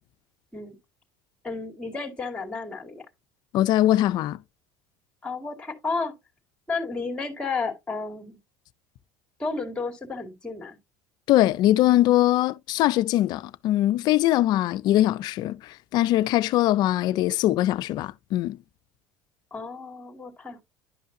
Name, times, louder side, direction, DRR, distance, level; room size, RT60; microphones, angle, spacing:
voice 1, 1.4-3.1 5.2-6.1 6.7-8.4 9.4-10.8 19.5-20.6, left 4 dB, 10° left, 2.2 m, -32 dB
voice 2, 3.5-4.4 11.3-15.6 15.9-18.6, left 14 dB, 55° left, 0.5 m, -21 dB
11.0 x 5.6 x 2.7 m
supercardioid pair, 115°, 8 cm